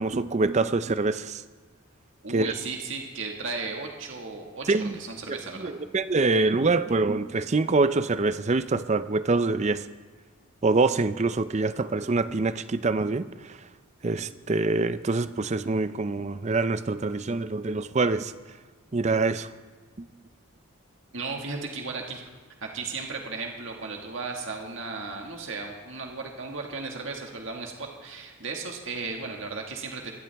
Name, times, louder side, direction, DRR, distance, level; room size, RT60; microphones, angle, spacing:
voice 1, 0.0-1.4 2.3-2.5 4.7-5.0 5.3-9.8 10.6-13.6 14.0-18.3 18.9-19.5, right 3 dB, 35° right, 13 dB, 0.5 m, -25 dB
voice 2, 2.2-5.7 21.1-22.2 22.6-30.1, right 4 dB, 60° right, 1 dB, 1.8 m, -35 dB
22.0 x 12.0 x 3.5 m, 1.4 s
head